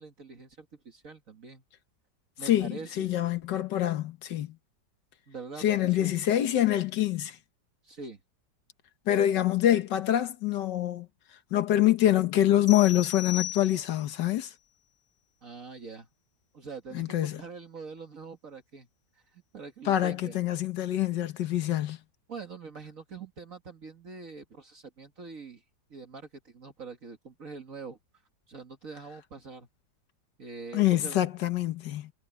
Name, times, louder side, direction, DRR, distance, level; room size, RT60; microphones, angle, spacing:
voice 1, 0.0-1.6 2.4-3.1 5.3-6.2 7.8-8.2 15.4-16.1 16.5-18.9 19.3-20.4 22.3-25.6 25.9-28.0 28.5-29.7 30.4-31.2, right 4 dB, 50° right, 2.1 m, -44 dB
voice 2, 2.4-4.5 5.6-7.4 9.1-11.1 11.5-14.5 16.9-17.4 19.8-22.0 30.7-32.1, left 12 dB, 80° left, 1.7 m, -25 dB
sound 1, 12.7-14.2, left 11 dB, 10° left, 1.7 m, -37 dB
omnidirectional pair, 1.9 m